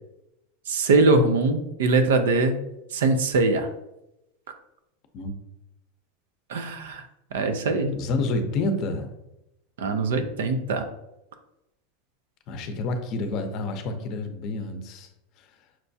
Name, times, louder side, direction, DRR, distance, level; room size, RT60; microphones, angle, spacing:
voice 1, 0.7-2.6 2.9-3.7 6.5-7.0 7.3-8.0 9.8-10.8, right 3 dB, 85° right, 8 dB, 0.5 m, -22 dB
voice 2, 8.0-9.1 12.5-15.1, left 2 dB, 50° left, 7 dB, 0.6 m, -28 dB
5.8 x 2.2 x 2.6 m, 0.88 s
supercardioid pair, 120°, 0 cm